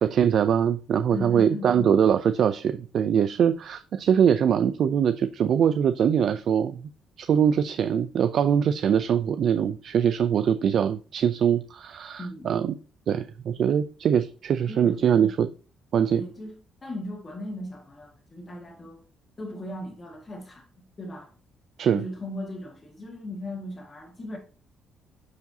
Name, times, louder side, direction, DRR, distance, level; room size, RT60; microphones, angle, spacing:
voice 1, 0.0-6.8 7.2-12.7 13.1-15.5 15.9-16.2 21.8-22.0, right 8 dB, 55° right, 0.4 m, -22 dB
voice 2, 1.1-2.0 12.2-12.6 14.7-15.3 16.1-19.0 19.4-20.7 21.0-21.3 21.9-24.4, left 1 dB, 25° left, 1.7 m, -37 dB
9.4 x 4.6 x 2.7 m
cardioid pair, 125°, 0 cm